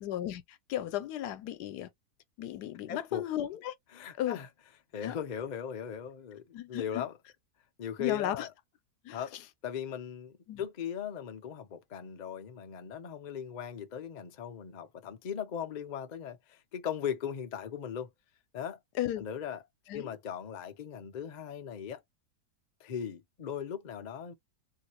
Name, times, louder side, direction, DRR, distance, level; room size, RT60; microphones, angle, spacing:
voice 1, 0.0-1.9 2.4-3.7 4.1-4.4 5.0-5.2 6.5-7.0 8.0-8.5 9.0-9.4 10.5-10.6 18.9-19.2 19.9-20.1, left 12 dB, 90° left, 1.2 m, -35 dB
voice 2, 2.9-3.2 3.9-4.5 4.9-6.4 6.7-7.1 7.8-8.5 9.1-9.3 9.6-18.1 18.5-18.8 19.2-19.6 19.9-22.0 22.8-24.3, left 8 dB, 60° left, 0.4 m, -38 dB
3.4 x 2.7 x 2.8 m
omnidirectional pair, 1.7 m